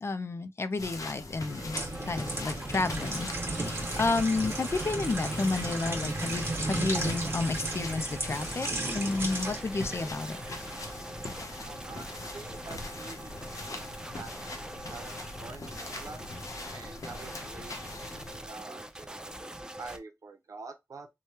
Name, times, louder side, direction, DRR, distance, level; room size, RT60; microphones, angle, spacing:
voice 1, 0.0-1.8 2.0-8.7 8.9-10.4, left 3 dB, 50° left, 0.4 m, -31 dB
sound 1, 0.8-18.4, left 2 dB, 75° left, 0.7 m, -42 dB
sound 2, 1.4-11.3 11.8-12.0, right 2 dB, 45° right, 1.2 m, -35 dB
sound 3, 1.9-20.0, right 1 dB, 15° right, 0.4 m, -43 dB
voice 2, 11.6-16.2 16.7-19.3 19.8-21.1, right 4 dB, 75° right, 0.7 m, -47 dB
3.2 x 2.2 x 2.8 m
wide cardioid pair, 65°, 6 cm